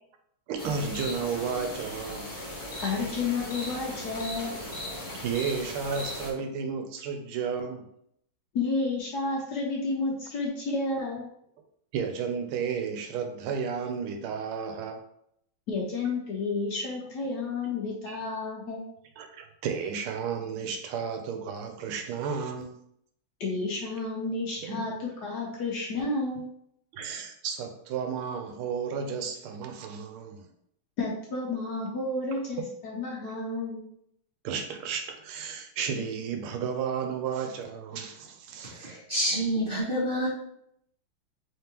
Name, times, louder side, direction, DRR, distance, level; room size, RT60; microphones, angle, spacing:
voice 1, 0.5-2.3 5.2-7.9 11.9-15.0 18.1-18.2 19.2-22.8 24.6-24.8 26.9-30.5 32.6-32.7 34.4-39.0, right 6 dB, 85° right, 5 dB, 1.5 m, -33 dB
sound 1, 0.6-6.3, left 1 dB, 25° left, 0.8 m, -38 dB
voice 2, 2.8-4.5 8.5-11.3 15.7-18.8 23.4-26.5 31.0-33.8, left 3 dB, 65° left, -2 dB, 1.1 m, -31 dB
voice 3, 38.7-40.3, right 1 dB, 45° right, -6 dB, 0.7 m, -28 dB
3.6 x 3.5 x 2.9 m, 0.72 s
omnidirectional pair, 2.3 m